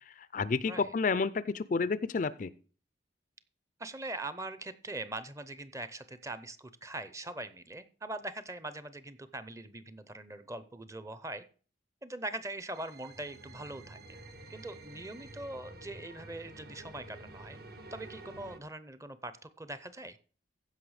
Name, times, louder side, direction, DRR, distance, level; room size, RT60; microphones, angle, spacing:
voice 1, 0.3-2.5, left 4 dB, 40° left, 16 dB, 0.4 m, -30 dB
voice 2, 3.8-11.4 12.0-14.0 14.5-17.6 17.9-20.2, right 2 dB, 15° right, 13 dB, 0.6 m, -42 dB
sound 1, 12.7-18.6, right 2 dB, 55° right, 1.1 m, -50 dB
15.0 x 5.5 x 4.8 m, 0.40 s
head